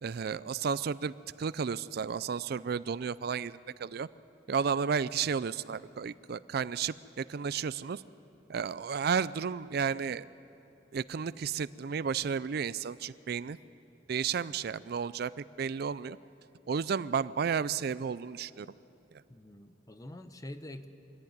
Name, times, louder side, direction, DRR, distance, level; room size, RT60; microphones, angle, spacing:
voice 1, 0.0-4.1 4.5-8.0 8.5-10.2 10.9-13.6 14.1-16.2 16.7-18.7, right 6 dB, 60° right, 17 dB, 0.4 m, -32 dB
voice 2, 19.3-20.9, left 1 dB, 20° left, 9 dB, 0.9 m, -45 dB
24.5 x 14.5 x 9.5 m, 2.7 s
head